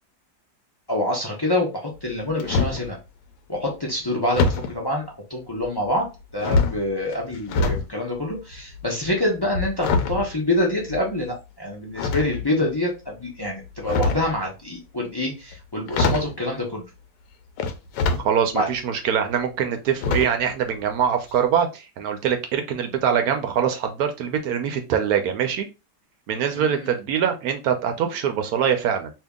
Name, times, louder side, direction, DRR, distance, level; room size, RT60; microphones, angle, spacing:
voice 1, 0.9-3.0 3.5-16.8 18.5-18.7 26.5-26.9, left 1 dB, 40° left, -2 dB, 0.3 m, -26 dB
sound 1, 1.9-2.9 4.3-4.7 5.6-6.1 6.4-7.9 8.2-11.2 12.0-12.7 13.7-14.4 15.5-15.6 15.9-16.4 17.6-18.3 18.7-18.8 20.0-20.5 20.8-21.0 21.3-21.4, left 3 dB, 85° left, 1.2 m, -24 dB
voice 2, 18.2-25.7 26.3-29.1, right 8 dB, 70° right, 6 dB, 1.0 m, -23 dB
2.8 x 2.8 x 3.5 m, 0.27 s
omnidirectional pair, 1.8 m